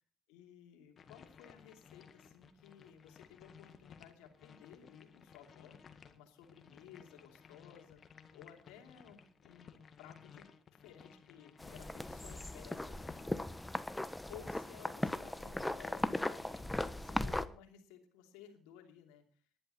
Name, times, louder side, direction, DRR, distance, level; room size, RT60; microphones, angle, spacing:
voice 1, 0.3-13.7 14.3-19.4, left 9 dB, 75° left, 3 dB, 2.8 m, -57 dB
sound 1, 1.0-13.2, left 7 dB, 50° left, 1.8 m, -58 dB
sound 2, 11.6-17.4, left 1 dB, 10° left, 1.3 m, -38 dB
19.5 x 11.0 x 4.3 m, 0.43 s
hypercardioid pair, 50°, 0 cm